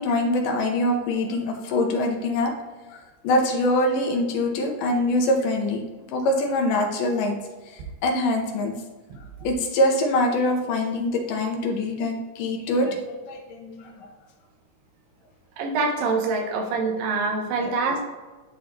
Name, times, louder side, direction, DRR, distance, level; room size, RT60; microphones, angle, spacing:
voice 1, 0.0-2.5 2.9-5.8 6.1-7.4 7.7-8.7 9.4-14.1 17.6-17.7, left 1 dB, 75° left, 2 dB, 2.4 m, -24 dB
voice 2, 15.6-18.0, right 3 dB, 85° right, 3 dB, 2.6 m, -25 dB
10.0 x 3.6 x 3.0 m, 1.3 s
omnidirectional pair, 3.9 m